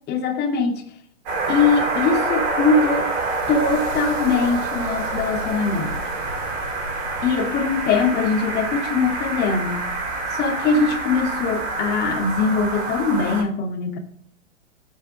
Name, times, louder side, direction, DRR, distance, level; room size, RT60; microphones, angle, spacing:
voice 1, 0.1-0.8 1.5-3.1 3.5-6.0 7.2-9.8 10.3-14.0, left 4 dB, 25° left, 4 dB, 2.4 m, -21 dB
sound 1, 1.3-13.4, right 3 dB, 40° right, 6.4 m, -26 dB
17.5 x 8.2 x 3.5 m, 0.62 s
figure-of-eight pair, 115°, 39 cm